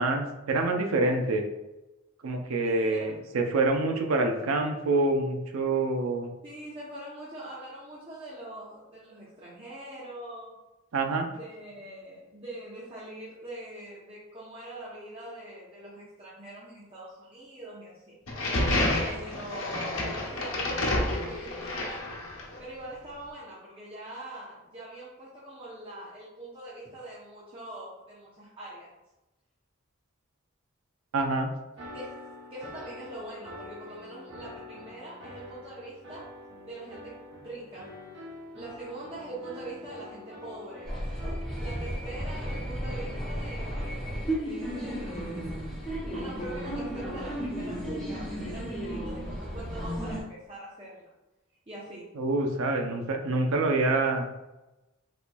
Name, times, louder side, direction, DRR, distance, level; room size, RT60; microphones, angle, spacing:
voice 1, 0.0-1.4 2.2-6.3 10.9-11.3 31.1-31.5 52.2-54.4, right 2 dB, 80° right, 3 dB, 0.5 m, -26 dB
voice 2, 2.6-3.1 6.4-10.6 11.3-18.2 19.0-22.1 22.6-28.9 31.9-32.1 32.5-36.3 36.6-37.1 37.4-37.9 38.5-41.0 41.6-45.5 46.1-51.1 51.7-52.1, right 1 dB, 25° right, -8 dB, 0.7 m, -43 dB
sound 1, 18.3-22.6, left 1 dB, 75° left, 0.9 m, -29 dB
sound 2, 31.8-45.5, left 1 dB, 60° right, 0.9 m, -46 dB
sound 3, 40.8-50.2, equal, 5° left, 1.2 m, -34 dB
4.1 x 3.0 x 2.2 m, 1.0 s
head